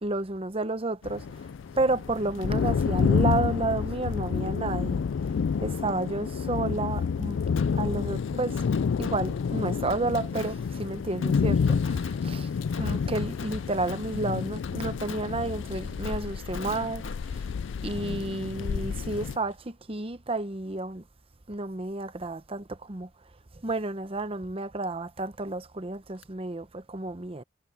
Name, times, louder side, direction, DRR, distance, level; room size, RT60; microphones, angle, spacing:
voice 1, 0.0-1.2 1.8-5.0 5.6-7.4 7.7-8.6 9.0-12.5 12.8-17.0 17.3-17.4 17.8-21.0 21.5-23.1 23.6-27.4, right 2 dB, 30° right, 0.8 m, -31 dB
sound 1, 1.0-19.4, left 6 dB, 70° left, 0.4 m, -29 dB
Fireworks, 7.6-19.2 19.5-19.6 26.2-26.3, left 4 dB, 85° left, 1.6 m, -45 dB
head